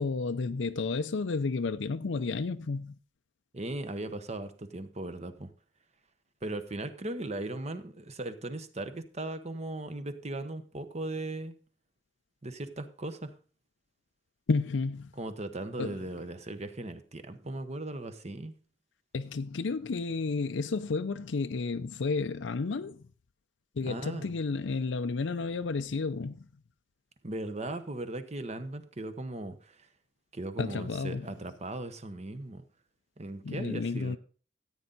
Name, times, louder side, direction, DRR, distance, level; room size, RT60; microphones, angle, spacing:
voice 1, 0.0-2.9 14.5-15.1 15.8-16.0 19.1-23.0 23.8-26.4 30.6-31.3 33.4-34.2, left 4 dB, 85° left, 0.5 m, -31 dB
voice 2, 3.5-5.5 6.4-11.5 12.4-13.3 15.2-18.5 23.8-24.3 27.2-29.9 30.3-32.6 33.2-34.2, right 2 dB, 35° right, 1.0 m, -38 dB
14.0 x 9.0 x 4.0 m
head